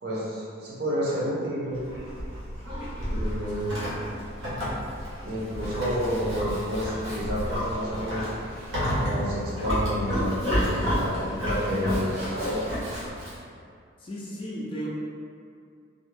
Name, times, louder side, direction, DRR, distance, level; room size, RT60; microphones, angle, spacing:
voice 1, 0.0-1.8 3.0-3.9 5.2-8.3 9.0-12.6, equal, 55° right, -7 dB, 0.6 m, -30 dB
Livestock farm animals working animals, 1.7-13.4, equal, 90° right, 0.9 m, -30 dB
voice 2, 14.0-14.9, equal, 25° left, -5 dB, 0.3 m, -34 dB
2.4 x 2.1 x 3.2 m, 2.3 s
head